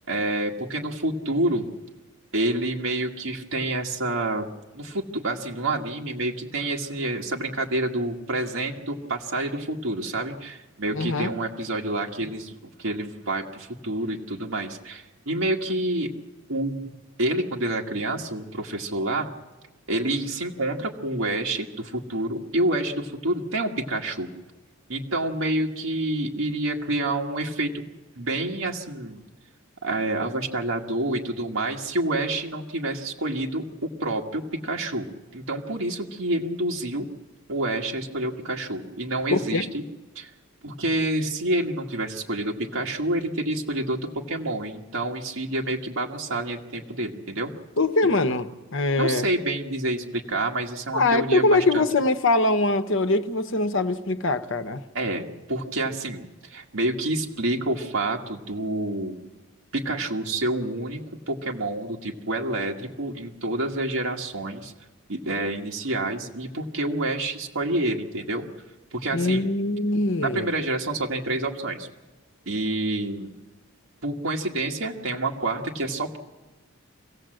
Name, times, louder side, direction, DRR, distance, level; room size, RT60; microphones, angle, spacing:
voice 1, 0.1-1.7 2.3-16.1 16.5-16.8 17.2-19.3 19.9-24.3 24.9-27.8 28.2-29.2 29.8-35.1 35.3-37.1 37.5-39.8 40.2-40.3 40.6-44.0 44.3-47.5 49.0-51.8 55.0-59.2 59.7-61.0 61.3-64.7 65.1-68.5 68.9-69.5 70.2-71.9 72.5-73.3 74.0-76.2, right 1 dB, 65° right, 1.7 m, -28 dB
voice 2, 10.9-11.3 39.3-39.7 47.8-49.3 50.9-54.8 69.1-70.5, left 2 dB, 60° left, 1.0 m, -23 dB
26.0 x 16.5 x 7.8 m
head